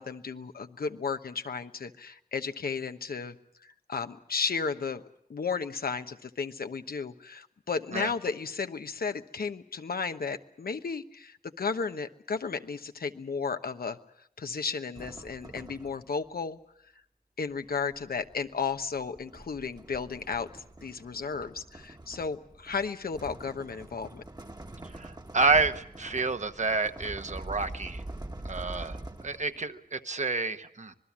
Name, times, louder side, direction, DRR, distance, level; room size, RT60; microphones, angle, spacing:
voice 1, 0.0-3.3 3.6-5.0 5.3-14.0 14.4-16.6 17.4-24.2, left 5 dB, 85° left, 8 dB, 1.1 m, -34 dB
sound 1, 14.9-16.3 17.5-29.7, right 1 dB, 25° right, 1.4 m, -44 dB
voice 2, 24.8-28.0 28.4-30.9, right 4 dB, 50° right, 9 dB, 1.2 m, -29 dB
26.0 x 20.5 x 7.4 m, 0.69 s
wide cardioid pair, 75°, 15 cm